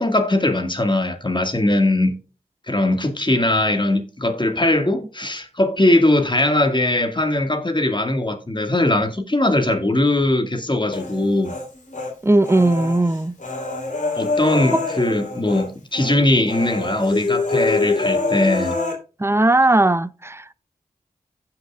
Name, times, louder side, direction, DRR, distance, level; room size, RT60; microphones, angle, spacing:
voice 1, 0.0-2.1 2.7-11.5 14.2-18.7, left 1 dB, 30° left, 2.0 m, -20 dB
Human voice, 10.9-12.1 12.4-15.7 15.9-16.2 16.5-18.9, left 3 dB, 50° left, 3.6 m, -25 dB
voice 2, 12.2-13.3 19.2-20.5, right 2 dB, 15° right, 0.6 m, -17 dB
15.5 x 5.8 x 2.4 m
cardioid pair, 40°, 16 cm